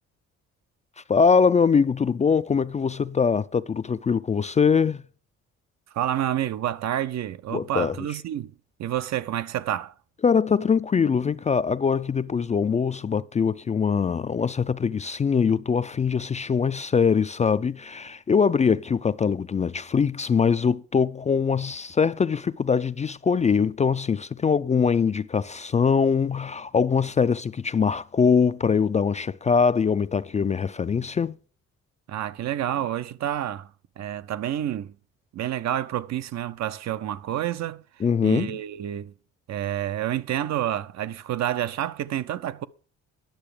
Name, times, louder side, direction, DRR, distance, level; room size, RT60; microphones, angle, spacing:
voice 1, 1.1-5.0 7.5-8.0 10.2-31.4 38.0-38.6, left 6 dB, 25° left, 0.3 m, -22 dB
voice 2, 5.9-8.5 8.8-9.9 32.1-33.7 34.0-35.0 35.3-39.1 39.5-42.7, right 11 dB, 60° right, 0.6 m, -29 dB
10.5 x 6.8 x 4.9 m
cardioid pair, 90°, 30 cm